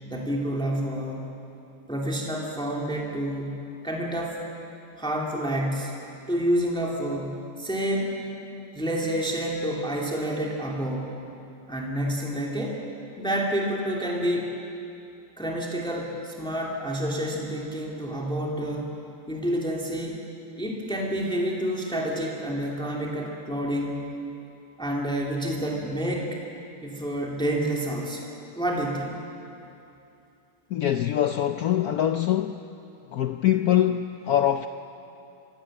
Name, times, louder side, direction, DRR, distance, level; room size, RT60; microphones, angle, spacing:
voice 1, 0.0-1.2 1.9-3.5 3.8-4.4 5.0-5.9 6.3-8.2 8.7-11.2 11.7-12.8 13.2-14.6 15.4-18.9 19.3-20.2 20.6-24.0 24.8-26.4 26.8-28.3 28.5-29.1, right 1 dB, ahead, -2 dB, 2.6 m, -28 dB
voice 2, 30.7-32.7 33.1-34.7, left 11 dB, 75° left, 7 dB, 0.8 m, -23 dB
25.0 x 15.5 x 8.9 m, 2.7 s
omnidirectional pair, 2.3 m